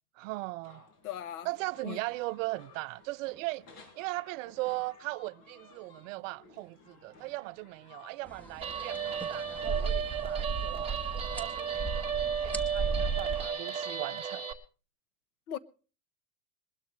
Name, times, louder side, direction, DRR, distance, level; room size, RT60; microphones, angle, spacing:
voice 1, 0.2-0.8 1.4-3.7 3.9-11.0 11.3-14.4, right 22 dB, 65° right, 0.6 m, -38 dB
sound 1, 0.6-11.5, left 3 dB, 55° left, 5.7 m, -57 dB
voice 2, 1.0-1.5 1.8-2.0 15.5-15.6, left 11 dB, 90° left, 1.2 m, -38 dB
sound 2, 8.3-13.5, right 4 dB, 5° left, 1.3 m, -35 dB
Guitar, 8.6-14.5, right 7 dB, 15° right, 1.7 m, -34 dB
21.5 x 12.5 x 3.2 m
supercardioid pair, 130°, 42 cm